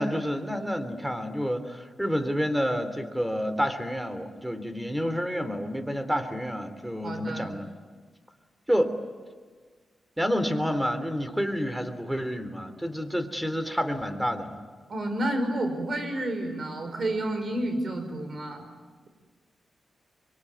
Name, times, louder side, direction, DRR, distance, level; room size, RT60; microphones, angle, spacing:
voice 1, 0.0-7.7 8.7-9.0 10.2-14.6, equal, 5° right, 10 dB, 3.2 m, -29 dB
voice 2, 7.0-7.5 14.9-18.7, right 1 dB, 55° right, 7 dB, 5.9 m, -30 dB
25.0 x 23.5 x 9.6 m, 1.5 s
cardioid pair, 70°, 0 cm